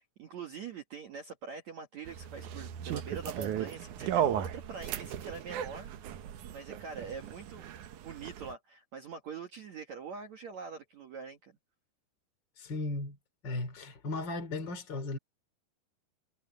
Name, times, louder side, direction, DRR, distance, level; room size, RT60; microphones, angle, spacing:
voice 1, 0.0-5.9 6.5-7.7 8.0-11.5, right 5 dB, 60° right, 2.0 m, -44 dB
sound 1, 2.1-8.5, right 10 dB, 75° right, 1.8 m, -36 dB
voice 2, 12.6-13.2 13.4-15.2, left 2 dB, 25° left, 3.2 m, -36 dB
omnidirectional pair, 5.2 m